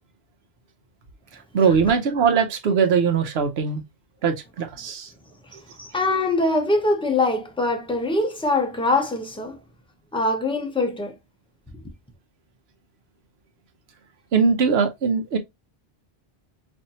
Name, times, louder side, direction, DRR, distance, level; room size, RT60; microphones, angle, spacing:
voice 1, 1.5-3.8 4.2-5.1 5.5-5.6 14.3-15.4, right 6 dB, 85° right, 1.0 m, -21 dB
voice 2, 5.8-9.6 10.1-11.2, left 2 dB, 5° left, 0.6 m, -23 dB
4.3 x 2.6 x 2.6 m
omnidirectional pair, 1.0 m